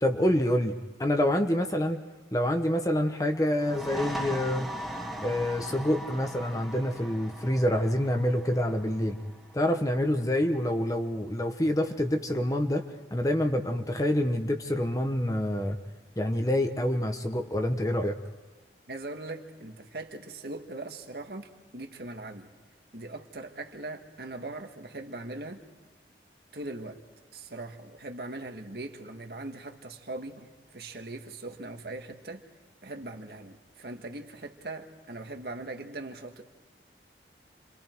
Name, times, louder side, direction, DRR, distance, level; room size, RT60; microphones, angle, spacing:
voice 1, 0.0-2.0 2.3-4.7 5.2-9.2 9.5-12.8 13.1-15.8 16.2-18.2, left 1 dB, 20° left, 5 dB, 1.2 m, -27 dB
sound 1, 3.6-11.0, equal, ahead, 1.8 m, -40 dB
voice 2, 18.9-22.5 22.9-25.6 26.5-27.0 27.3-32.4 32.8-36.4, right 2 dB, 60° right, 4 dB, 2.0 m, -40 dB
29.5 x 25.0 x 4.7 m, 1.3 s
head